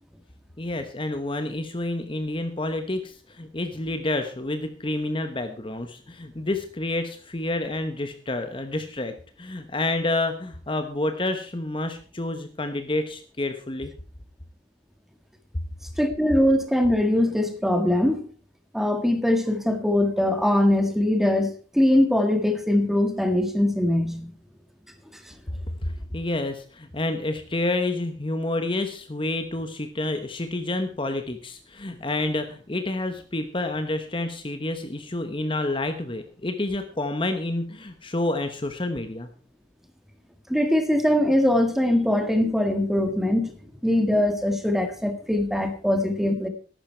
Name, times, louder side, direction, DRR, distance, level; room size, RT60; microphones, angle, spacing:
voice 1, 0.6-13.9 25.8-39.3, left 2 dB, 30° left, 1.1 m, -29 dB
voice 2, 16.0-18.2 18.7-24.3 40.5-43.5 43.8-46.5, left 1 dB, ahead, 1.7 m, -22 dB
14.0 x 11.5 x 4.5 m
head